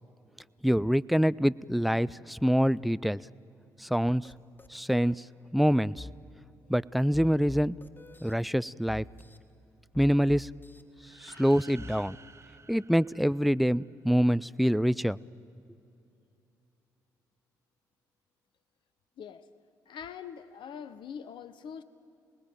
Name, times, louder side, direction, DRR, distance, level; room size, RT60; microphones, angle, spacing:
voice 1, 0.6-3.2 3.8-4.3 4.7-5.2 5.5-6.1 6.7-7.8 8.2-9.0 10.0-10.5 11.2-12.2 12.7-15.2, equal, ahead, 19 dB, 0.5 m, -25 dB
sound 1, 4.2-4.3 4.6-5.1 6.0-6.1 7.1-8.3 8.9-9.4 9.9-10.8 11.3-11.9, left 2 dB, 20° left, 1.7 m, -45 dB
sound 2, 11.0-13.9, right 4 dB, 30° right, 1.1 m, -54 dB
voice 2, 19.2-19.5 19.9-21.8, left 7 dB, 60° left, 14 dB, 1.0 m, -43 dB
28.5 x 19.5 x 9.1 m, 2.8 s
hypercardioid pair, 45°, 10 cm